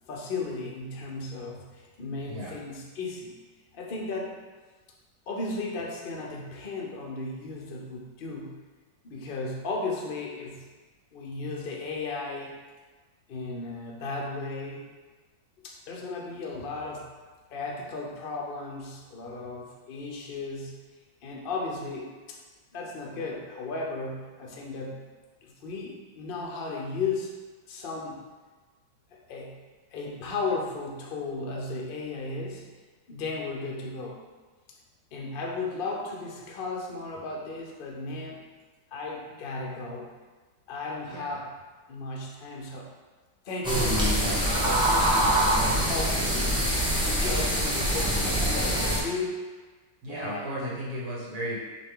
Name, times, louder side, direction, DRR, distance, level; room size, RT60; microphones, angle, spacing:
voice 1, 0.1-3.3 3.7-4.4 5.3-8.6 9.0-10.7 11.1-12.6 13.3-14.8 15.6-17.1 17.5-20.8 21.2-22.4 22.7-25.1 25.4-27.3 27.7-28.2 29.1-29.6 29.9-32.7 33.1-34.2 35.1-38.4 38.9-40.1 40.7-41.5 41.9-42.9 43.4-46.5 47.1-49.4 50.1-50.8, left 3 dB, 90° left, -1 dB, 0.4 m, -35 dB
sound 1, 43.6-49.0, right 1 dB, 5° right, 0.4 m, -24 dB
voice 2, 50.0-51.6, equal, 60° right, -5 dB, 1.4 m, -34 dB
6.2 x 2.4 x 3.6 m, 1.3 s
omnidirectional pair, 2.0 m